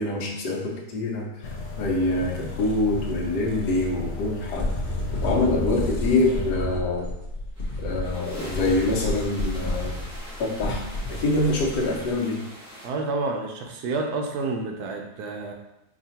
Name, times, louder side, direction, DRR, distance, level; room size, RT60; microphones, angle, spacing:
voice 1, 0.0-4.7 5.2-7.1 7.8-9.9 10.4-12.5, left 2 dB, 75° left, 0 dB, 1.3 m, -25 dB
sound 1, 1.4-6.5, left 4 dB, 90° left, 0.5 m, -35 dB
sound 2, 4.6-12.1, left 1 dB, 40° left, 0.6 m, -31 dB
sound 3, 7.6-12.9, equal, 5° right, 1.3 m, -43 dB
voice 2, 12.8-15.5, right 3 dB, 70° right, 2 dB, 1.0 m, -29 dB
4.9 x 2.9 x 2.8 m, 0.86 s
omnidirectional pair, 1.9 m